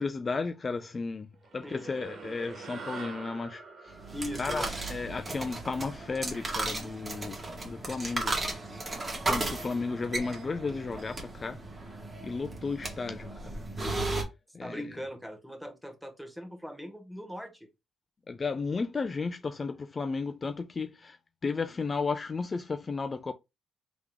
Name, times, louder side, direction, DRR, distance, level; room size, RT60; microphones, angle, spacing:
voice 1, 0.0-4.0 4.4-8.4 9.3-11.6 12.2-13.6 14.5-14.9 18.3-23.3, left 4 dB, 30° left, 0.3 m, -34 dB
sound 1, 1.4-6.1, right 4 dB, 60° right, 1.3 m, -45 dB
sound 2, 3.9-14.2, right 2 dB, 25° right, 1.6 m, -35 dB
voice 2, 4.1-4.7 14.6-17.7, equal, 5° right, 1.1 m, -40 dB
3.6 x 3.0 x 3.5 m
cardioid pair, 90°, 0 cm